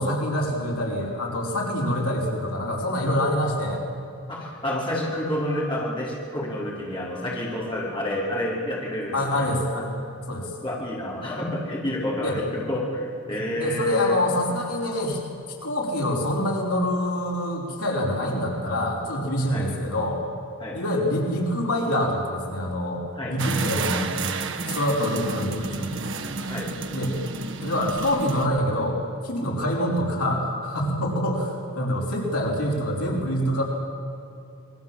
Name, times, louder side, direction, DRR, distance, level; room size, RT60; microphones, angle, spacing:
voice 1, 0.0-3.8 9.1-9.9 10.3-10.5 12.2-12.4 13.3-15.2 15.6-20.2 20.7-23.0 23.3-24.1 24.7-25.9 26.9-27.2 27.6-29.0 29.2-33.6, left 1 dB, 80° left, -2 dB, 5.0 m, -25 dB
voice 2, 4.3-9.5 10.6-14.2 19.5-19.7 20.6-20.8 23.1-23.4 26.4-26.7, left 1 dB, 20° left, -5 dB, 5.1 m, -29 dB
sound 1, 23.4-28.5, right 3 dB, 55° right, 1.4 m, -31 dB
27.5 x 21.5 x 7.6 m, 2.6 s
head